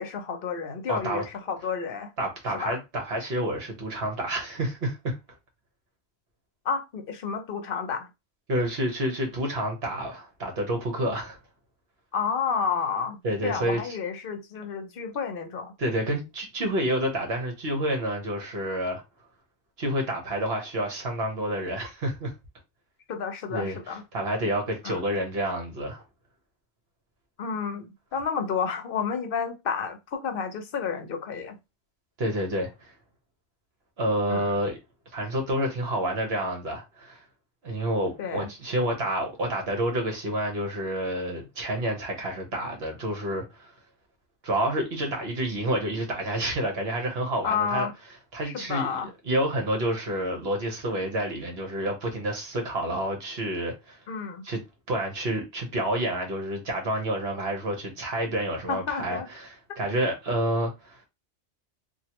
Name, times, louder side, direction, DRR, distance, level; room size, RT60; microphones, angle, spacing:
voice 1, 0.0-2.1 2.5-2.8 6.6-8.1 12.1-13.2 13.4-15.7 23.1-24.0 24.8-25.0 27.4-31.6 34.3-34.6 38.2-38.5 47.4-47.9 48.4-49.1 54.1-54.4 58.7-59.3, left 6 dB, 55° left, 0.8 m, -30 dB
voice 2, 0.9-1.2 2.2-5.2 8.5-11.4 13.2-13.8 15.8-19.0 19.8-22.3 23.5-23.8 24.1-26.0 32.2-32.9 34.0-34.8 35.1-37.2 37.6-43.7 44.4-47.9 48.3-48.9 49.3-54.0 54.4-54.6 54.9-61.0, right 1 dB, 60° right, 1.2 m, -29 dB
3.0 x 2.5 x 2.9 m
omnidirectional pair, 1.2 m